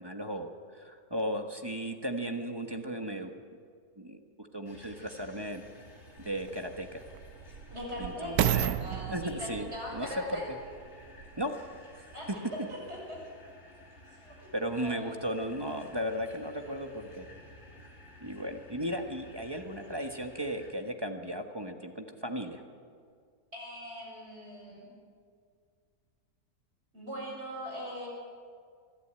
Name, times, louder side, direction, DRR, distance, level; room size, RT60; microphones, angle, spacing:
voice 1, 0.0-3.3 4.0-5.6 6.2-7.0 8.0-8.8 9.1-10.6 11.4-11.5 12.0-12.1 14.5-17.3 18.2-22.6, equal, 15° right, 5 dB, 1.2 m, -36 dB
sound 1, 4.7-20.7, left 1 dB, 45° left, 2.9 m, -54 dB
sound 2, 5.4-5.5 6.2-11.5 12.1-12.2, right 11 dB, 75° right, 1.2 m, -33 dB
voice 2, 7.7-10.5 12.1-12.3 12.7-13.2 14.1-14.5 14.8-15.1 23.5-24.9 26.9-28.1, equal, 45° right, -2 dB, 6.9 m, -41 dB
25.0 x 12.5 x 8.8 m, 2.1 s
omnidirectional pair, 1.6 m